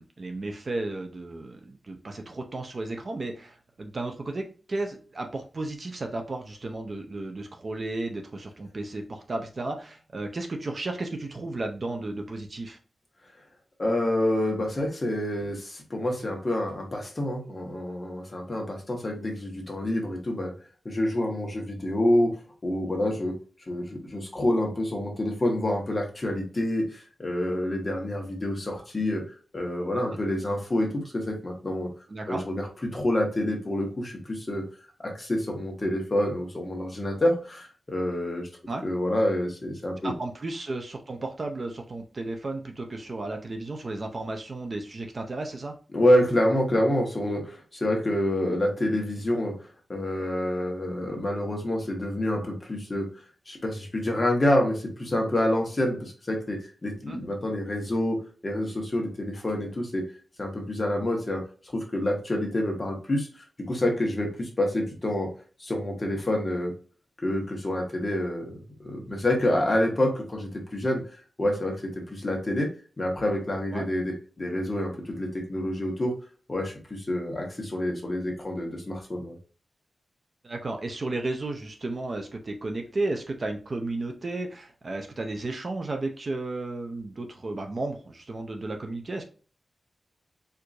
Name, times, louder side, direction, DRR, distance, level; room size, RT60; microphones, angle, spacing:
voice 1, 0.0-12.8 30.1-30.2 32.1-32.4 38.7-38.8 40.0-45.8 57.1-57.2 73.7-73.9 80.4-89.2, right 2 dB, 40° right, 4 dB, 0.5 m, -33 dB
voice 2, 13.8-20.5 20.8-22.3 22.6-23.3 23.7-29.2 29.5-31.9 32.3-34.6 35.0-38.5 38.8-40.1 45.9-49.5 49.9-53.1 53.5-58.2 58.4-60.0 60.4-61.4 61.7-63.3 63.7-65.3 65.6-66.7 67.2-71.0 71.4-72.7 73.0-76.1 76.5-79.3, left 1 dB, 25° left, 0 dB, 1.1 m, -27 dB
4.5 x 2.5 x 2.5 m, 0.37 s
wide cardioid pair, 150°, 0 cm